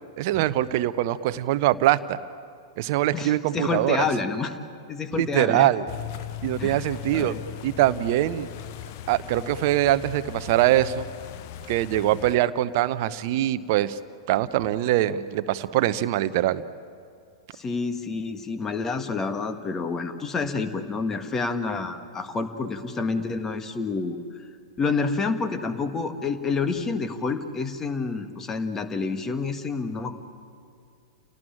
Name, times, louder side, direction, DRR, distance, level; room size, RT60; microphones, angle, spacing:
voice 1, 0.2-2.2 2.8-4.1 5.2-5.9 6.4-7.3 7.6-8.5 9.1-11.0 11.7-14.0 14.3-16.6, right 14 dB, 45° right, 14 dB, 0.9 m, -23 dB
voice 2, 3.1-4.6 4.9-5.7 6.6-7.4 17.5-24.2 24.8-30.1, left 4 dB, 15° left, 8 dB, 1.7 m, -28 dB
sound 1, 5.9-12.4, left 11 dB, 45° left, 1.0 m, -38 dB
30.0 x 18.5 x 8.8 m, 2.4 s
figure-of-eight pair, 100°, 2 cm